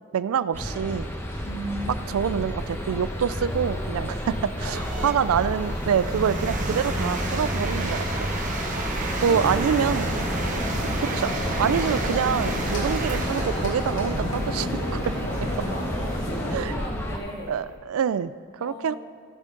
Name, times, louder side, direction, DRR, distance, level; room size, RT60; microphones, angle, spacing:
voice 1, 0.1-1.1 2.1-4.3 4.6-8.3 9.2-10.1 11.0-11.3 11.6-15.1 16.5-16.7 17.5-18.3 18.6-18.9, right 7 dB, 85° right, 16 dB, 0.3 m, -26 dB
sound 1, 0.5-17.2, equal, 10° left, 0.8 m, -31 dB
voice 2, 1.4-2.3 4.0-4.2 4.6-5.2 8.7-10.8 12.6-12.9 15.2-17.6 18.6-19.0, equal, 50° left, -1 dB, 1.5 m, -38 dB
sound 2, 2.2-2.3 2.9-17.7, right 2 dB, 40° right, 1.1 m, -33 dB
sound 3, 9.2-16.6, equal, 80° left, 2.5 m, -31 dB
16.0 x 7.5 x 3.8 m, 2.1 s
head